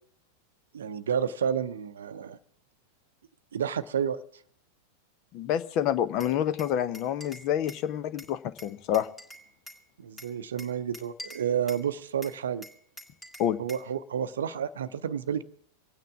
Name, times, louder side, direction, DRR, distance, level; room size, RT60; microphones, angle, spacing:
voice 1, 0.7-2.4 3.5-4.2 10.0-12.7 13.6-15.4, right 8 dB, 65° right, 13 dB, 0.6 m, -30 dB
voice 2, 5.3-9.1 13.4-13.6, left 10 dB, 40° left, 14 dB, 0.7 m, -28 dB
Glass, 6.2-7.9 8.2-9.8 10.2-11.9 12.2-13.9, equal, 10° left, 2.1 m, -47 dB
26.0 x 9.1 x 3.6 m, 0.63 s
figure-of-eight pair, 90°, 0 cm